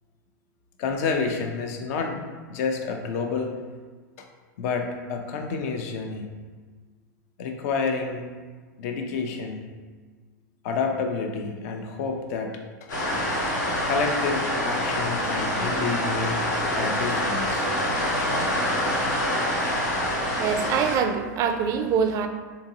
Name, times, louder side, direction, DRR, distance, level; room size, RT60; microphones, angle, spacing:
voice 1, 0.8-2.2 2.5-3.5 4.2-4.3 4.6-6.3 7.4-8.2 8.8-9.7 10.6-12.5 13.8-16.4 16.8-17.7, left 5 dB, 55° left, 3 dB, 0.5 m, -29 dB
sound 1, 12.9-21.0, left 1 dB, 80° left, 1.0 m, -26 dB
voice 2, 20.4-22.3, right 7 dB, 35° right, 7 dB, 0.3 m, -24 dB
3.6 x 2.8 x 2.8 m, 1.5 s
hypercardioid pair, 100°, 10 cm